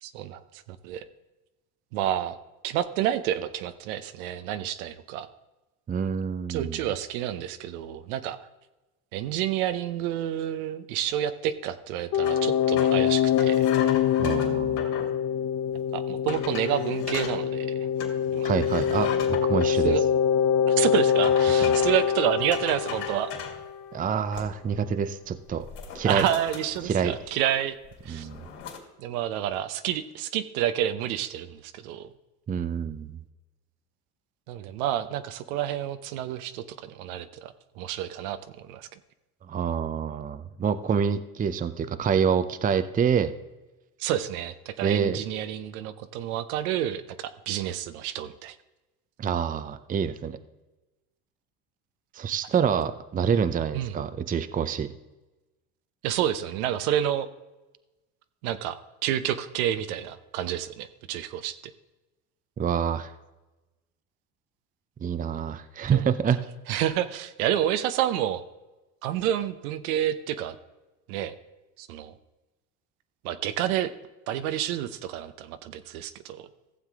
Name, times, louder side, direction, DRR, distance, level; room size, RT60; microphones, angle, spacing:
voice 1, 0.0-0.4 0.8-1.1 1.9-2.4 2.6-5.3 6.5-8.4 9.1-13.7 15.9-17.9 18.3-18.4 19.8-20.0 20.7-23.3 26.0-27.7 28.0-28.3 29.0-32.1 34.5-38.9 44.0-48.5 53.7-53.9 56.0-57.3 58.4-58.8 59.0-61.6 65.9-66.0 66.7-68.4 69.0-70.5 71.1-71.3 71.8-72.1 73.2-73.9 74.3-76.5, right 11 dB, 70° right, 12 dB, 0.9 m, -29 dB
voice 2, 5.9-6.8 14.2-14.8 18.4-20.0 21.6-21.7 23.9-25.7 25.9-26.2 26.8-27.2 28.1-28.4 32.5-33.2 39.5-43.3 44.8-45.2 49.2-50.4 52.1-54.9 62.6-63.1 65.0-66.4, right 7 dB, 20° right, 12 dB, 0.6 m, -27 dB
sound 1, 12.1-23.7, left 8 dB, 40° left, 1.0 m, -24 dB
sound 2, 12.2-15.1 15.7-15.8 16.3-17.4 18.0-19.7 20.9-22.1 22.5-23.6 24.1-24.8 25.1-25.3 25.6-27.5 27.8-28.8, left 6 dB, 60° left, 2.9 m, -38 dB
15.0 x 7.3 x 3.6 m, 1.1 s
hypercardioid pair, 80°, 44 cm